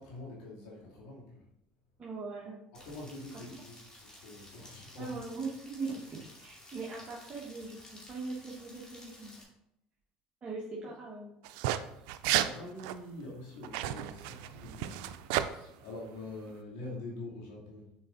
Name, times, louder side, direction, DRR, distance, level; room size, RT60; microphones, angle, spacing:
voice 1, 0.0-1.5 2.8-5.2 12.4-18.0, left 2 dB, 85° left, -4 dB, 2.6 m, -45 dB
voice 2, 2.0-2.6 3.3-3.4 5.0-9.3 10.4-11.4, right 3 dB, 35° right, -5 dB, 1.5 m, -40 dB
Rain, 2.7-9.4, left 1 dB, 25° left, 2.4 m, -53 dB
sound 1, 11.4-11.8 12.1-12.5 12.8-12.9 13.6-15.5, right 13 dB, 80° right, 0.4 m, -32 dB
6.8 x 4.8 x 4.0 m, 0.78 s
supercardioid pair, 115°, 3 cm